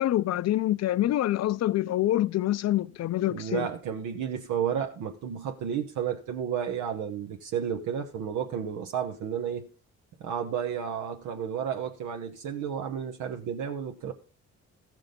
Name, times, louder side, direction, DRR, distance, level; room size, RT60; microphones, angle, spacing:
voice 1, 0.0-3.7, left 14 dB, 60° left, 0.5 m, -26 dB
voice 2, 3.3-9.7 10.2-14.1, right 8 dB, 80° right, 1.0 m, -32 dB
14.5 x 6.1 x 5.2 m
cardioid pair, 90°, 30 cm